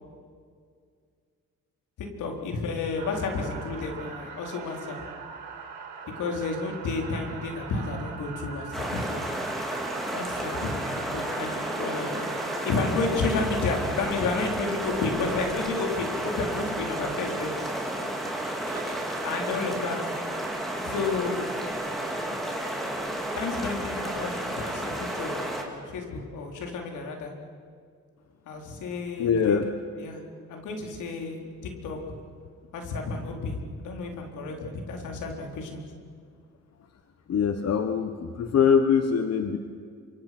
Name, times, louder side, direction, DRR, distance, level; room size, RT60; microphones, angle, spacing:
voice 1, 2.0-5.0 6.2-9.3 10.1-10.8 11.1-12.3 12.6-17.5 19.1-20.0 20.8-21.4 23.3-27.3 28.5-29.6 30.0-30.2 30.5-32.0 32.7-35.8, left 3 dB, 80° left, 2 dB, 4.3 m, -31 dB
sound 1, 3.0-12.9 14.0-14.2 15.1-15.5, right 6 dB, 75° right, 5.1 m, -42 dB
sound 2, 8.7-25.6, right 1 dB, ahead, 4.4 m, -32 dB
sound 3, 18.6-24.3 24.6-24.7 24.9-25.2, right 3 dB, 60° right, 6.7 m, -48 dB
voice 2, 29.2-29.7 34.5-34.7 37.3-39.6, left 7 dB, 55° left, 7 dB, 1.4 m, -23 dB
26.5 x 25.5 x 6.2 m, 2.1 s
cardioid pair, 90°, 30 cm